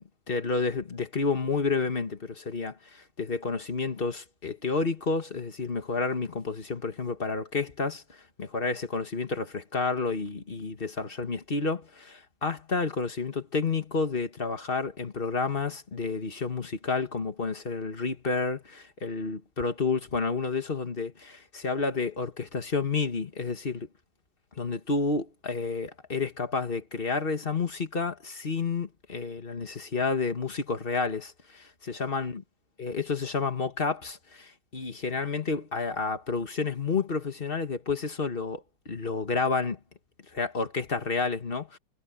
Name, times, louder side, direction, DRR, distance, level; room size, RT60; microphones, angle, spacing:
voice 1, 0.3-23.9 24.6-32.4 32.8-39.8 40.3-41.8, left 4 dB, 30° left, 1.7 m, -30 dB
omnidirectional pair, 2.0 m